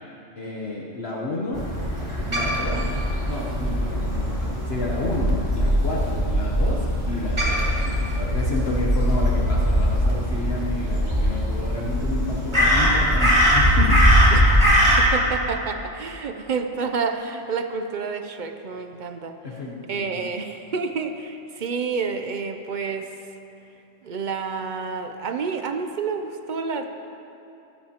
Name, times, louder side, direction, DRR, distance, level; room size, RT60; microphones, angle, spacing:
voice 1, 0.4-1.6 2.3-2.9 3.3-14.0 19.4-20.2, left 2 dB, 55° left, -3 dB, 1.2 m, -30 dB
Crow, 1.5-15.0, equal, 20° right, 2.4 m, -21 dB
voice 2, 14.3-19.4 19.9-23.1 24.0-26.9, right 5 dB, 50° right, 6 dB, 0.6 m, -29 dB
15.5 x 13.0 x 2.9 m, 2.8 s
omnidirectional pair, 1.3 m